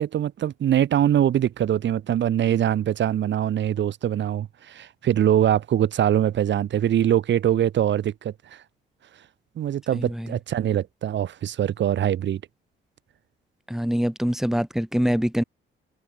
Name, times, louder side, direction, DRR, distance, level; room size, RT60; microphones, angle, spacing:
voice 1, 0.0-8.6 9.6-12.4, right 10 dB, 65° right, 3.0 m, -23 dB
voice 2, 9.9-10.4 13.7-15.4, equal, ahead, 3.4 m, -24 dB
cardioid pair, 90°, 20 cm